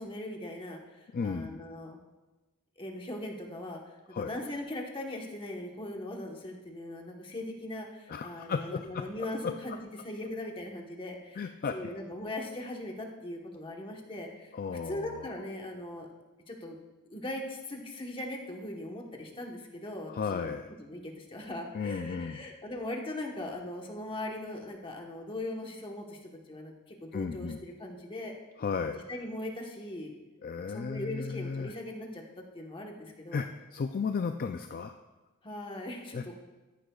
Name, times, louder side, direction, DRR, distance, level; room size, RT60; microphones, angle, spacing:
voice 1, 0.0-2.0 2.8-3.8 4.2-16.1 16.5-16.8 17.1-20.5 20.8-26.2 26.5-28.3 29.1-30.1 30.7-33.5 35.4-36.3, left 1 dB, 25° left, 1 dB, 1.2 m, -40 dB
voice 2, 1.1-1.6 4.1-4.3 8.1-9.5 11.4-11.8 14.5-15.3 20.1-20.7 21.7-22.4 27.1-27.6 28.6-29.0 30.4-31.7 33.3-35.0 36.1-36.2, left 5 dB, 40° left, 7 dB, 0.4 m, -34 dB
14.0 x 10.0 x 2.4 m, 1.2 s
head